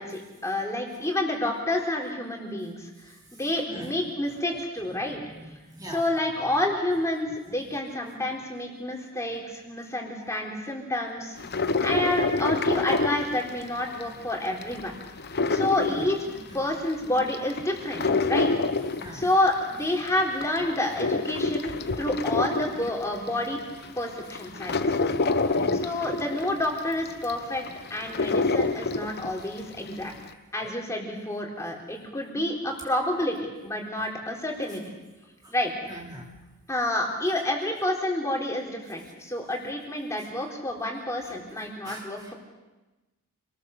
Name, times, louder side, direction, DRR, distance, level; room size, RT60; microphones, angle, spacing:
voice 1, 0.0-2.9 3.3-5.2 5.9-11.4 11.8-14.9 15.5-18.5 19.1-23.6 24.0-25.0 25.8-30.1 30.5-33.4 33.6-35.0 35.5-35.7 36.7-42.3, left 1 dB, 15° left, 0 dB, 4.0 m, -29 dB
voice 2, 5.7-6.0 15.9-16.0 19.0-19.3 25.5-25.9 30.6-30.7 35.9-36.2 41.8-42.3, right 1 dB, 20° right, -2 dB, 3.0 m, -41 dB
sound 1, 11.4-14.0 14.4-16.7 17.2-19.8 20.2-23.3 23.8-23.9 24.3-29.5 29.8-29.9, left 3 dB, 50° left, 1.1 m, -27 dB
27.5 x 20.5 x 6.7 m, 1.1 s
head